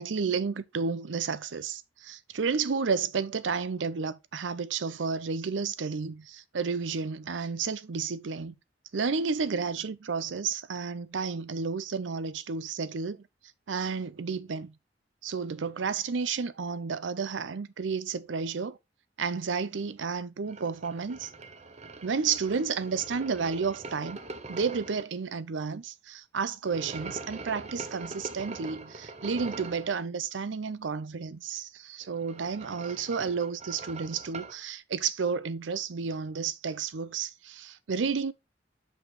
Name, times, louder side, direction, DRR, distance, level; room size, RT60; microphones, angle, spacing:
voice 1, 0.0-8.6 8.9-13.2 13.7-14.7 15.2-18.8 19.2-21.3 22.0-24.2 24.5-38.3, right 5 dB, 90° right, 0.6 m, -31 dB
sound 1, 20.5-25.0 26.7-29.9 32.0-34.6, right 3 dB, 40° right, 0.8 m, -43 dB
6.4 x 5.4 x 3.7 m
head